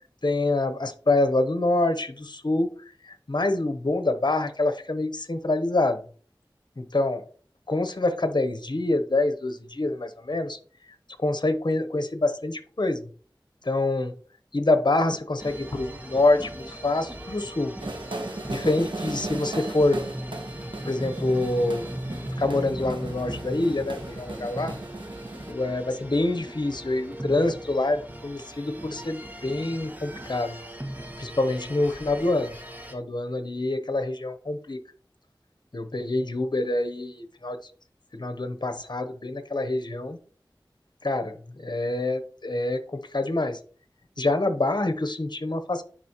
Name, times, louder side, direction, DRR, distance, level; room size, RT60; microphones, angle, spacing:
voice 1, 0.2-2.7 3.0-6.0 6.8-7.2 7.7-10.6 11.2-13.0 13.6-14.1 14.5-17.7 18.5-20.0 20.8-24.7 25.5-30.6 31.2-32.5 32.9-34.8 35.7-37.6 38.1-40.2 41.0-43.6 44.2-45.8, left 2 dB, 60° left, 8 dB, 0.9 m, -26 dB
sound 1, 15.4-32.9, right 1 dB, 20° right, 1.5 m, -38 dB
sound 2, 17.8-25.5, right 2 dB, 75° right, 1.1 m, -37 dB
10.0 x 4.7 x 3.0 m, 0.42 s
wide cardioid pair, 40°, 8 cm